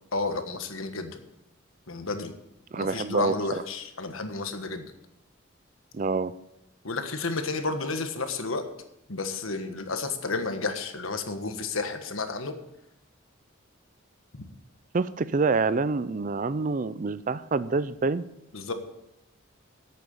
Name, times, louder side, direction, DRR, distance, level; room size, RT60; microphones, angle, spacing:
voice 1, 0.1-1.2 1.9-2.3 2.7-4.9 6.8-8.6 9.1-12.5 14.3-14.4 18.5-18.7, left 3 dB, 85° left, 7 dB, 1.4 m, -31 dB
voice 2, 2.7-3.6 5.9-6.3 14.9-18.2, right 4 dB, 40° right, 16 dB, 0.4 m, -27 dB
11.0 x 8.5 x 6.7 m, 0.87 s
head